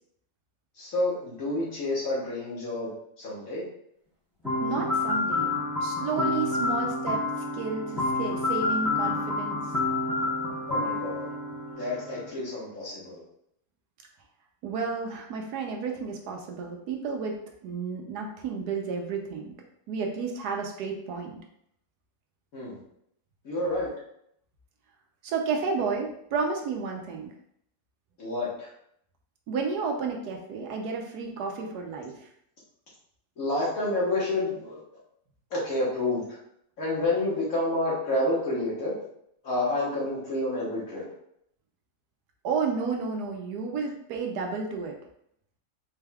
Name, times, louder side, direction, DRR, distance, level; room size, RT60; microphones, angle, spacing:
voice 1, 0.8-2.9 3.2-3.6 10.7-11.3 11.7-13.2 22.5-22.8 23.4-23.9 28.2-28.7 33.4-34.8 35.5-36.2 36.8-38.9 39.4-41.0, left 2 dB, 60° left, -6 dB, 1.8 m, -29 dB
sound 1, 4.4-12.3, left 2 dB, ahead, 1.2 m, -29 dB
voice 2, 4.6-5.5 5.8-7.2 7.5-9.6 14.6-19.5 19.9-21.4 25.2-27.3 29.5-32.3 42.4-45.0, right 5 dB, 85° right, 2 dB, 1.2 m, -31 dB
4.4 x 3.4 x 2.3 m, 0.72 s
omnidirectional pair, 1.7 m